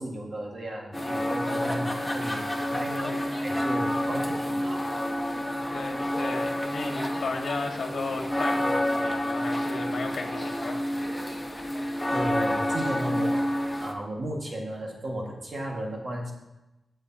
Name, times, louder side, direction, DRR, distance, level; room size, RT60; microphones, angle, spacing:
voice 1, 0.0-5.0 12.1-16.3, right 1 dB, 40° right, -1 dB, 1.7 m, -34 dB
sound 1, 0.9-13.9, left 1 dB, 10° left, 1.0 m, -29 dB
voice 2, 5.7-10.8, left 3 dB, 70° left, 2 dB, 1.6 m, -34 dB
16.0 x 6.8 x 2.8 m, 0.98 s
wide cardioid pair, 150°, 0 cm